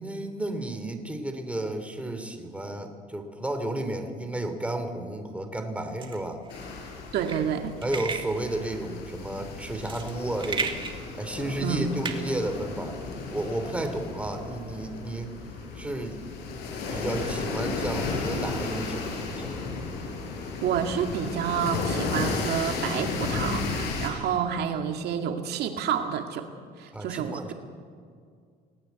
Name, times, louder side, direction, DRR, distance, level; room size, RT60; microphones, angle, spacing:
voice 1, 0.0-6.4 7.8-13.0 13.3-15.3 15.7-16.2 16.9-19.8 26.9-27.5, right 1 dB, 5° right, 6 dB, 3.1 m, -32 dB
sound 1, 6.0-13.2, right 5 dB, 30° right, 2.7 m, -36 dB
sound 2, 6.5-24.1, left 4 dB, 90° left, 6.1 m, -34 dB
voice 2, 7.1-7.7 11.6-11.9 20.6-26.5 26.8-27.5, right 8 dB, 75° right, 4 dB, 2.1 m, -29 dB
28.5 x 19.0 x 8.2 m, 2.2 s
cardioid pair, 110°, 17 cm